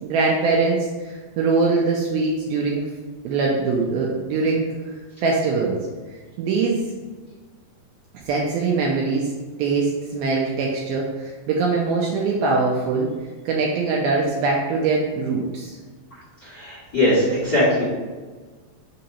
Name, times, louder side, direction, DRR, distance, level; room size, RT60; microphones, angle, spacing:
voice 1, 0.0-2.9 3.2-4.7 5.2-5.8 6.4-6.8 8.3-9.3 9.6-13.1 13.5-15.8, right 4 dB, 90° right, -2 dB, 2.2 m, -22 dB
voice 2, 16.4-17.8, left 1 dB, 45° left, -9 dB, 1.3 m, -20 dB
6.2 x 2.9 x 5.3 m, 1.4 s
omnidirectional pair, 4.9 m